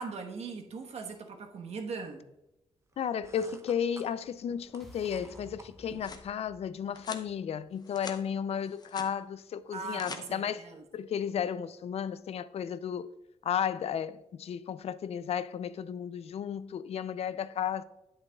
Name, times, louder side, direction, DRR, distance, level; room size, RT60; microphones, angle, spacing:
voice 1, 0.0-2.2 9.7-10.8, right 4 dB, 70° right, 1.2 m, -40 dB
sound 1, 2.9-6.2, right 3 dB, 25° right, 0.7 m, -54 dB
voice 2, 3.0-10.6 10.9-13.1 13.4-17.8, left 8 dB, 60° left, 0.4 m, -33 dB
sound 2, 3.8-7.9, equal, ahead, 1.4 m, -56 dB
sound 3, 5.6-6.3 6.9-7.3 7.7-8.2 8.6-9.1 9.7-10.2, left 4 dB, 35° left, 0.8 m, -44 dB
9.5 x 8.5 x 2.3 m
cardioid pair, 115°, 12 cm